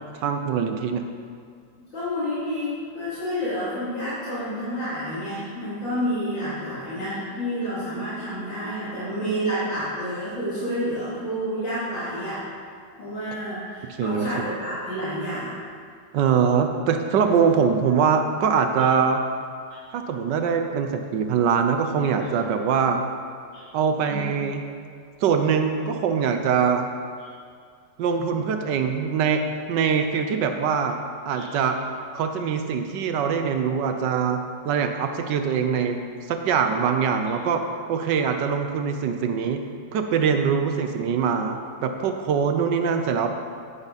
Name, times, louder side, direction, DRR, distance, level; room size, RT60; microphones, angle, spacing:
voice 1, 0.1-1.0 14.0-14.5 16.1-19.2 19.9-23.0 23.7-24.6 25.2-26.9 28.0-29.4 29.7-31.0 31.3-31.8 32.1-34.4 34.6-36.0 36.3-37.6 37.9-39.6 39.9-43.3, right 6 dB, 75° right, 6 dB, 1.3 m, -23 dB
voice 2, 1.9-12.4 13.0-15.5 22.2-22.3 23.5-23.6 24.1-24.2 31.3-31.5, equal, 80° left, -11 dB, 3.5 m, -29 dB
9.8 x 9.2 x 4.0 m, 2.1 s
omnidirectional pair, 2.0 m